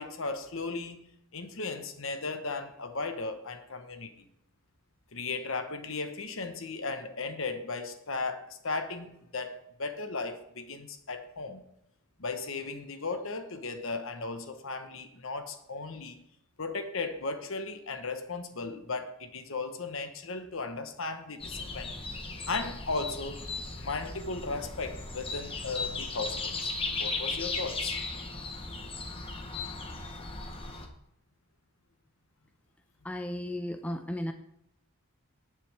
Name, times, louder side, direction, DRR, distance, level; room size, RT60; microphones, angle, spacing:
voice 1, 0.0-4.3 5.1-11.6 12.2-16.2 16.6-21.9 22.5-26.7 27.0-28.0, left 3 dB, 65° left, 7 dB, 1.3 m, -36 dB
sound 1, 21.4-30.9, left 3 dB, 25° left, 1.1 m, -36 dB
voice 2, 33.0-34.3, left 1 dB, 5° left, 5 dB, 0.6 m, -34 dB
19.0 x 6.9 x 3.5 m, 0.78 s
head